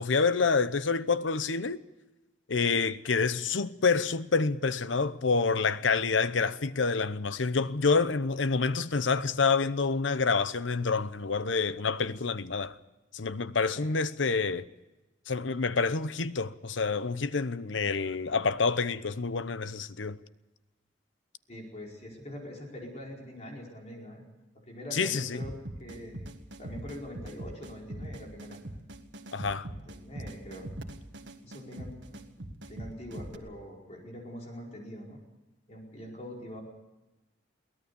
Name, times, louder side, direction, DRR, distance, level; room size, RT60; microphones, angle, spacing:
voice 1, 0.0-1.8 2.5-12.7 13.1-14.7 15.3-20.2 24.9-25.4 29.3-29.7, left 4 dB, 85° left, 0.9 m, -28 dB
voice 2, 21.5-24.2 24.5-25.5 25.8-26.3 26.6-28.6 29.7-30.7 31.4-35.2 35.7-36.6, equal, 35° left, 4.9 m, -44 dB
sound 1, 25.4-33.4, right 1 dB, 75° right, 1.8 m, -42 dB
23.0 x 18.0 x 7.0 m
head